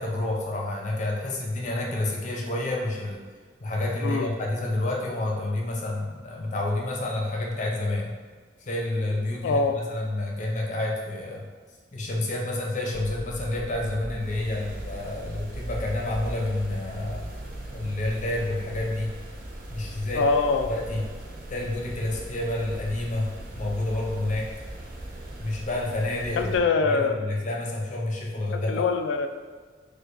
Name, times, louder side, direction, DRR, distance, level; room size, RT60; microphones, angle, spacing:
voice 1, 0.0-3.2 3.6-8.2 8.6-11.5 11.9-17.3 17.7-19.1 19.7-20.2 20.7-21.0 21.5-23.3 23.6-24.5 25.4-26.5 26.9-28.8, left 1 dB, 40° left, -2 dB, 0.6 m, -29 dB
voice 2, 9.4-9.8 20.1-20.7 26.3-27.2 28.7-29.3, left 4 dB, 85° left, 7 dB, 0.3 m, -23 dB
sound 1, 12.9-26.6, right 1 dB, 50° right, 0.5 m, -39 dB
4.5 x 2.2 x 2.5 m, 1.5 s
head